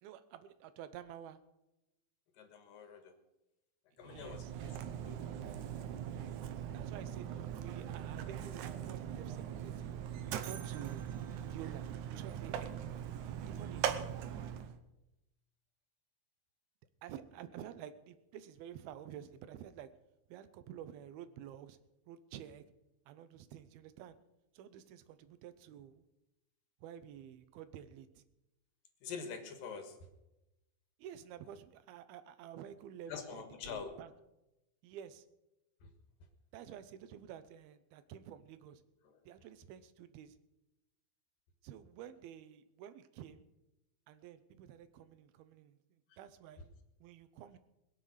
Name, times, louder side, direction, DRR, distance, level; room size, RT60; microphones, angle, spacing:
voice 1, 0.0-1.4 4.0-4.5 6.7-9.9 10.3-11.0 11.5-11.9 12.2-12.8 13.4-13.8 17.0-19.9 20.3-21.8 22.1-22.6 23.1-24.2 24.5-26.0 26.8-28.2 31.0-34.1 34.8-35.3 36.5-38.8 39.3-40.4 41.6-43.5 44.1-46.6 47.0-47.6, right 10 dB, 90° right, 12 dB, 2.8 m, -50 dB
voice 2, 2.4-3.1 4.0-5.2 29.0-30.0 33.1-33.9 35.8-35.9 39.1-39.2 46.1-46.2, left 6 dB, 70° left, 6 dB, 3.1 m, -45 dB
Mechanisms, 4.0-14.8, right 9 dB, 70° right, 2.0 m, -41 dB
21.5 x 7.7 x 6.5 m, 0.95 s
omnidirectional pair, 4.2 m